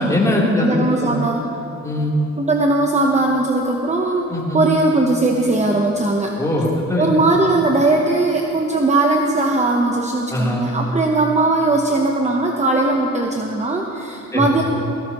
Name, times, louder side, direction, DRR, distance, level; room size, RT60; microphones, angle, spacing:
voice 1, 0.0-1.2 1.8-2.1 4.3-4.7 6.4-7.1 10.3-10.6 14.3-14.5, left 1 dB, 10° left, -5 dB, 3.5 m, -20 dB
voice 2, 0.6-1.4 2.4-6.3 7.0-14.6, right 2 dB, 25° right, 1 dB, 1.0 m, -19 dB
18.0 x 17.0 x 3.1 m, 2.9 s
cardioid pair, 90°, 30 cm